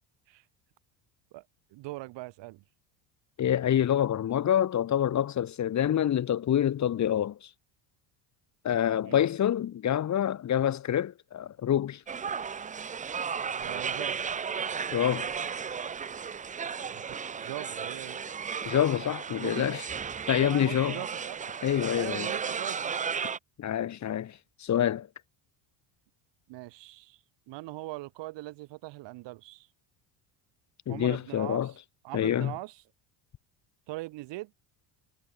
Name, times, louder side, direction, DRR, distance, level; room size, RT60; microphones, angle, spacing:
voice 1, 1.7-2.6 9.0-9.3 13.6-14.2 16.9-18.2 19.4-19.7 20.4-21.4 22.0-22.9 26.5-29.7 30.9-31.8 32.0-32.8 33.9-34.5, right 19 dB, 70° right, 7.4 m, -41 dB
voice 2, 3.4-7.5 8.6-12.0 14.9-15.3 18.6-19.8 20.3-21.0 21.6-22.3 23.6-25.1 30.9-31.7 32.1-32.5, left 10 dB, 40° left, 2.4 m, -27 dB
sound 1, 12.1-23.4, right 6 dB, 15° right, 0.7 m, -34 dB
cardioid pair, 140°, 45 cm